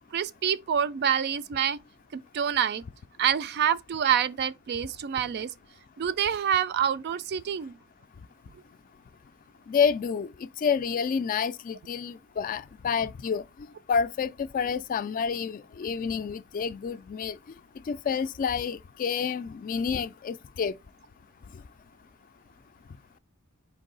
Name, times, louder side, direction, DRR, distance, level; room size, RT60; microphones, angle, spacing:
voice 1, 0.1-1.8 2.1-2.8 3.2-5.5 6.0-7.8, right 8 dB, 50° right, 0.3 m, -27 dB
voice 2, 9.7-13.4 13.9-17.4 17.9-20.7, left 6 dB, 40° left, 0.3 m, -29 dB
4.6 x 2.7 x 3.8 m
head